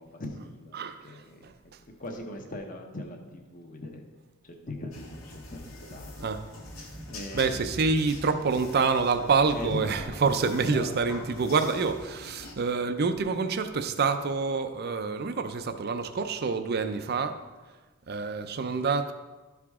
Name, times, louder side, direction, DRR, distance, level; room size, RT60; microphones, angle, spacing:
voice 1, 0.0-1.5 2.0-4.0 4.4-6.2 7.1-7.6 9.4-11.2 11.7-11.9, left 1 dB, 40° left, 3 dB, 1.0 m, -40 dB
sound 1, 4.9-12.5, left 1 dB, 75° left, 1.4 m, -44 dB
voice 2, 7.3-17.3 18.1-19.1, right 4 dB, 50° right, 9 dB, 0.5 m, -27 dB
12.0 x 4.8 x 3.6 m, 1.2 s
head